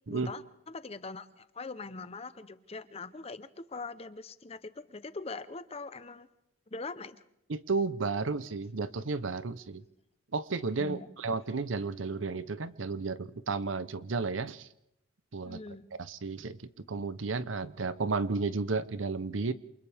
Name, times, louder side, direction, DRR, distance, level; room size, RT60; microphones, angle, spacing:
voice 1, 0.1-6.3 6.7-7.2 10.8-11.1 15.4-15.8, left 3 dB, 30° left, 13 dB, 0.8 m, -42 dB
voice 2, 7.5-9.8 10.3-14.7 15.3-15.6 16.0-16.6 16.9-19.5, right 4 dB, 85° right, 15 dB, 0.8 m, -33 dB
28.0 x 27.5 x 3.5 m, 0.80 s
head